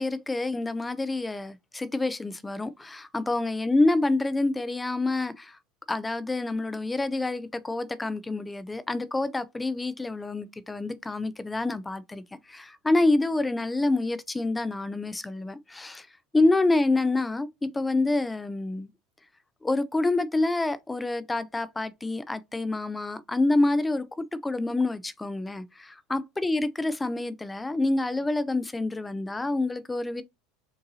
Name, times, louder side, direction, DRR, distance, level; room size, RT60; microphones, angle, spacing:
voice 1, 0.0-5.6 5.9-12.2 12.5-16.1 16.3-18.9 19.6-30.2, left 2 dB, 10° left, 0.5 m, -27 dB
6.7 x 2.6 x 2.7 m
supercardioid pair, 105°, 0 cm